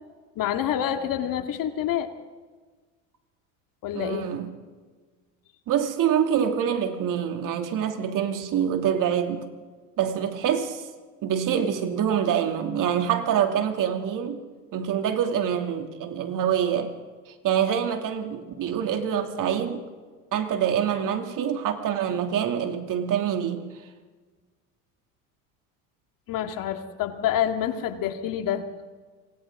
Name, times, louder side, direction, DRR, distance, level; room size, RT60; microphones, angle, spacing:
voice 1, 0.4-2.1 3.8-4.3 26.3-28.7, left 10 dB, 55° left, 6 dB, 2.3 m, -27 dB
voice 2, 3.9-4.5 5.7-9.4 10.0-10.9 11.2-14.4 14.7-16.9 17.4-19.8 20.3-23.7, right 8 dB, 50° right, 5 dB, 2.9 m, -25 dB
28.0 x 24.5 x 3.9 m, 1.4 s
supercardioid pair, 95°, 40 cm